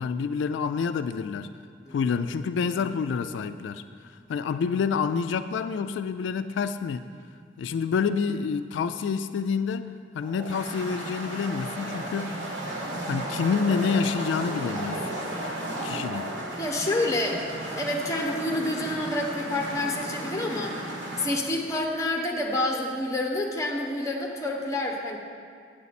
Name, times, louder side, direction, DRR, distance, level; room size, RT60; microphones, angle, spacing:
voice 1, 0.0-1.5 1.9-7.1 7.6-9.9 10.1-12.4 13.1-15.1 15.8-16.4, left 5 dB, 90° left, 10 dB, 0.3 m, -28 dB
sound 1, 10.2-21.3, right 1 dB, 90° right, 1.6 m, -34 dB
voice 2, 16.6-20.8 21.2-25.2, left 1 dB, 15° left, 0 dB, 1.0 m, -28 dB
9.4 x 7.8 x 4.1 m, 2.2 s
head